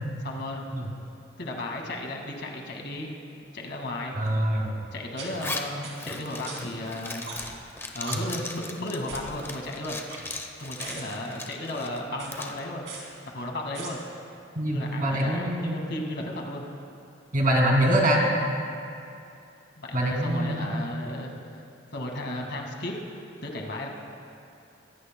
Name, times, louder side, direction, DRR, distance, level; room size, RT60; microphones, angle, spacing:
voice 1, 0.2-0.8 1.4-3.1 3.5-4.1 4.9-7.3 7.9-10.0 10.6-12.9 13.3-14.0 14.6-16.7 19.8-21.6 21.9-23.9, left 1 dB, 60° left, 1 dB, 1.9 m, -34 dB
voice 2, 4.1-4.8 8.1-8.2 14.6-15.8 17.3-18.3 19.9-20.7, right 1 dB, 45° right, 0 dB, 2.2 m, -24 dB
sound 1, 4.3-4.4 5.2-5.3 5.8-5.9 6.5-6.6 7.3-7.6 8.0-8.1 9.1-9.3 9.9-10.5 10.8-11.0 12.1-12.3 12.9-13.0 13.7-13.9, right 5 dB, 65° right, 3.0 m, -39 dB
Zipper (clothing), 5.4-12.6, left 2 dB, 15° left, 0.8 m, -38 dB
22.5 x 16.5 x 2.2 m, 2.6 s
head